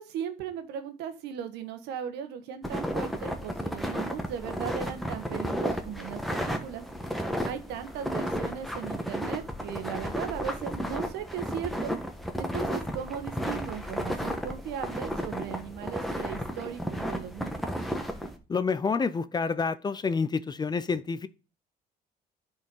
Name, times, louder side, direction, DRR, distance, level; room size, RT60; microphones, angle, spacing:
voice 1, 0.0-6.8 7.4-11.9 12.4-17.5, right 8 dB, 85° right, 1.4 m, -37 dB
sound 1, 2.6-18.4, equal, ahead, 1.4 m, -33 dB
voice 2, 18.5-21.3, left 5 dB, 25° left, 0.6 m, -28 dB
10.5 x 4.5 x 5.4 m
cardioid pair, 110°, 17 cm